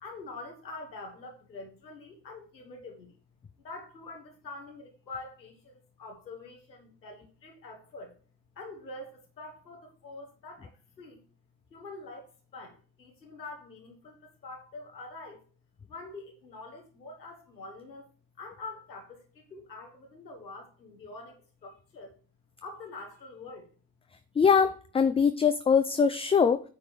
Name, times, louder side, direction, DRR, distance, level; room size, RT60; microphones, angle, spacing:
voice 1, 0.0-3.2 3.6-8.1 8.6-11.2 11.7-15.4 15.9-18.1 18.4-22.1 22.6-23.7, left 3 dB, 90° left, 2 dB, 1.1 m, -45 dB
voice 2, 24.4-26.6, left 6 dB, 15° left, 10 dB, 0.4 m, -23 dB
9.4 x 3.6 x 6.0 m, 0.40 s
figure-of-eight pair, 45°, 49 cm